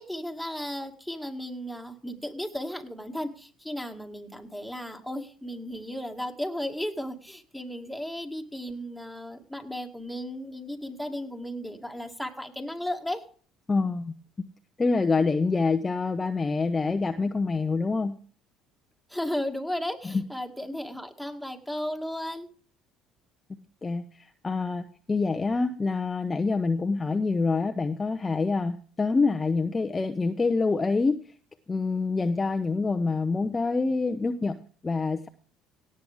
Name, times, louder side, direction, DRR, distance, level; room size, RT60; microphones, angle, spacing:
voice 1, 0.0-13.2 19.1-22.5, left 1 dB, ahead, 5 dB, 2.2 m, -35 dB
voice 2, 13.7-14.1 14.8-18.1 23.8-31.2 31.7-34.6 34.8-35.3, left 4 dB, 25° left, 6 dB, 0.8 m, -26 dB
17.5 x 7.7 x 3.6 m, 0.41 s
hypercardioid pair, 65°, 0 cm